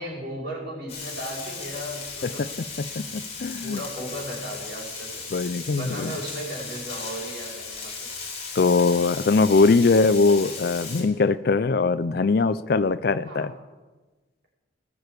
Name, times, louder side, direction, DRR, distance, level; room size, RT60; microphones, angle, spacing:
voice 1, 0.0-2.5 3.0-3.3 3.6-5.4 5.8-7.9 13.2-13.5, equal, 55° right, -4 dB, 4.9 m, -36 dB
Frying (food), 0.9-11.0, left 4 dB, 35° left, 3.8 m, -36 dB
voice 2, 3.0-3.8 5.3-6.1 8.6-13.5, left 4 dB, 55° left, 15 dB, 0.4 m, -21 dB
19.0 x 6.9 x 8.2 m, 1.3 s
head